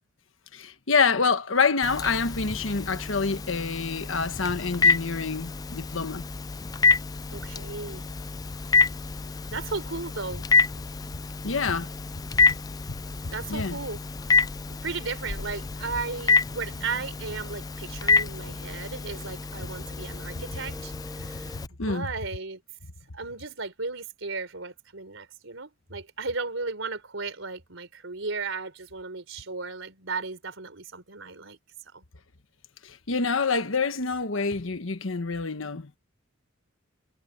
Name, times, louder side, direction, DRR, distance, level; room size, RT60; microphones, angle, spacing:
voice 1, 0.5-6.2 11.4-11.9 12.5-12.6 12.9-13.0 13.5-13.8 21.8-22.1 32.8-35.9, left 4 dB, 75° left, 1.3 m, -27 dB
Telephone, 1.8-21.7, left 4 dB, 20° left, 0.3 m, -28 dB
voice 2, 7.3-8.0 9.5-10.5 13.3-14.0 14.7-21.6 21.8-22.6 23.1-31.6 31.8-32.0, right 4 dB, 70° right, 4.0 m, -35 dB
sound 1, 17.1-21.6, right 1 dB, 10° right, 5.4 m, -50 dB
head